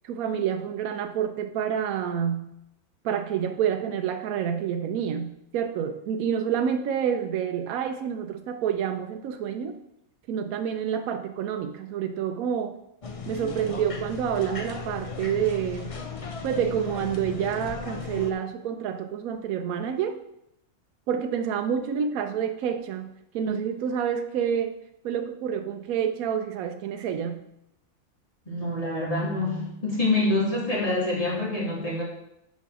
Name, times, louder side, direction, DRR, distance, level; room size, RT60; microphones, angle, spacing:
voice 1, 0.0-2.5 3.0-9.8 10.3-12.7 13.3-15.9 16.4-20.2 21.1-24.8 25.0-27.4, right 8 dB, 80° right, 6 dB, 1.0 m, -28 dB
sound 1, 13.0-18.3, left 5 dB, 45° left, 0.4 m, -36 dB
voice 2, 28.5-32.0, left 2 dB, 25° left, -5 dB, 2.7 m, -26 dB
7.4 x 5.5 x 4.9 m, 0.82 s
omnidirectional pair, 1.5 m